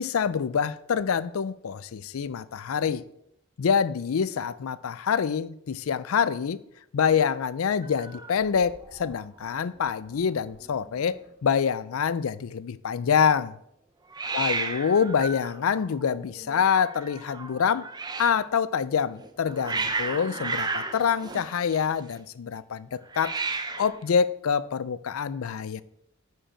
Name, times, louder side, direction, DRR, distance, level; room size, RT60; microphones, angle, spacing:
voice 1, 0.0-3.0 3.6-6.6 6.9-13.5 14.3-17.9 18.2-23.3 23.8-25.8, left 7 dB, 85° left, 0.4 m, -26 dB
Hiss, 7.8-9.2 9.4-9.9 10.2-10.3 10.4-11.1 14.1-18.4 19.2-22.1 23.1-24.0, right 3 dB, 20° right, 0.6 m, -34 dB
10.0 x 4.8 x 4.4 m
head